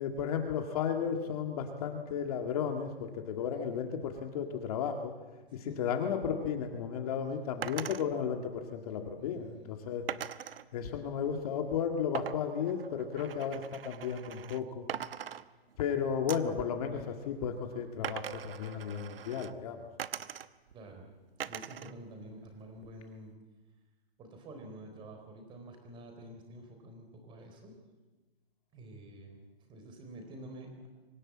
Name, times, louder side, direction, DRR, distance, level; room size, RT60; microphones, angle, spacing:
voice 1, 0.0-5.1 5.5-10.1 10.7-14.9 15.8-19.9, left 7 dB, 35° left, 4 dB, 1.9 m, -34 dB
sound 1, 7.6-8.0 10.1-10.6 12.1-14.6 14.9-15.9 16.3-16.6 18.0-19.5 20.0-20.7 21.4-21.9 22.3-23.1, right 9 dB, 65° right, 1.1 m, -41 dB
voice 2, 9.2-9.8 20.7-21.0 21.4-23.4 24.2-27.7 28.7-29.4 29.7-30.9, right 1 dB, 15° right, 4 dB, 4.0 m, -49 dB
24.5 x 15.5 x 8.7 m, 1.3 s
hypercardioid pair, 160°, 31 cm